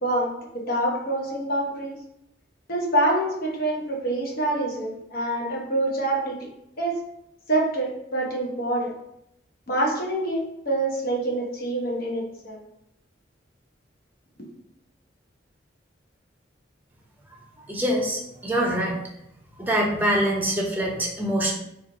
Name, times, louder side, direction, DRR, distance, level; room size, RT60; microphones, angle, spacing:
voice 1, 0.0-2.0 2.7-6.5 6.8-7.0 7.5-8.9 9.7-12.6, right 1 dB, 55° left, -2 dB, 0.9 m, -26 dB
voice 2, 17.7-19.0 19.6-21.6, right 1 dB, 10° right, -2 dB, 0.6 m, -24 dB
3.1 x 2.4 x 3.8 m, 0.80 s
head